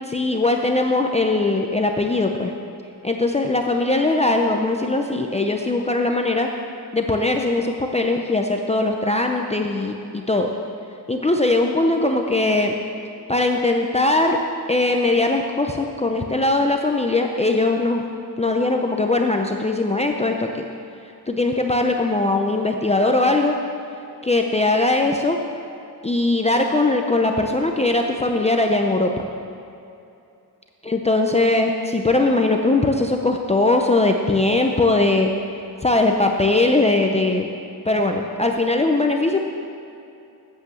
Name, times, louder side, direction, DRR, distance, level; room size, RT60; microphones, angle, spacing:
voice 1, 0.1-2.5 3.0-6.5 6.9-10.5 11.1-12.8 13.3-14.4 14.7-18.0 18.4-20.6 21.3-23.6 24.2-25.4 26.0-29.2 30.8-35.3 35.8-37.5 37.9-39.5, left 2 dB, 15° left, 2 dB, 0.5 m, -20 dB
8.4 x 8.3 x 7.6 m, 2.7 s
wide cardioid pair, 150°, 38 cm